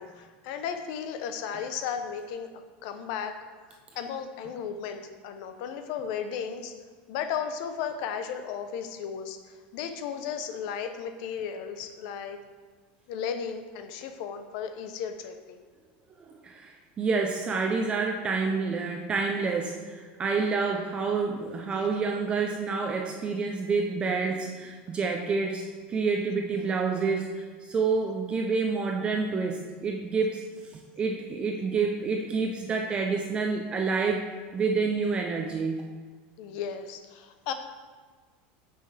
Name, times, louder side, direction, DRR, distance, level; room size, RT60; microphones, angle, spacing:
voice 1, 0.0-2.5 2.8-3.4 3.7-6.7 7.1-12.4 13.1-15.6 36.4-37.5, left 7 dB, 60° left, 8 dB, 0.7 m, -35 dB
voice 2, 16.2-34.3 34.5-35.8, right 4 dB, 20° right, 2 dB, 0.5 m, -28 dB
8.5 x 5.6 x 3.3 m, 1.5 s
supercardioid pair, 155°, 5 cm